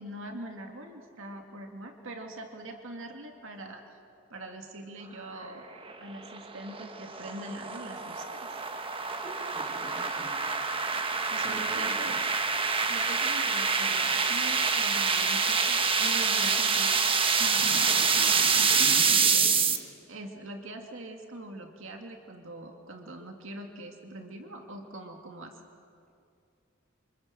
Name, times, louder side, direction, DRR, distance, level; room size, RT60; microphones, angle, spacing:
voice 1, 0.0-3.8 4.3-5.7 6.0-8.6 11.3-12.2 12.9-17.0 17.3-17.9 19.3-19.4 20.1-25.6, right 1 dB, 65° right, 3 dB, 2.3 m, -43 dB
sound 1, 5.8-19.8, right 5 dB, 25° right, 1.3 m, -26 dB
voice 2, 9.2-10.3 11.4-12.2 17.6-19.5, right 1 dB, 5° left, -3 dB, 5.8 m, -43 dB
28.5 x 25.5 x 7.7 m, 2.4 s
head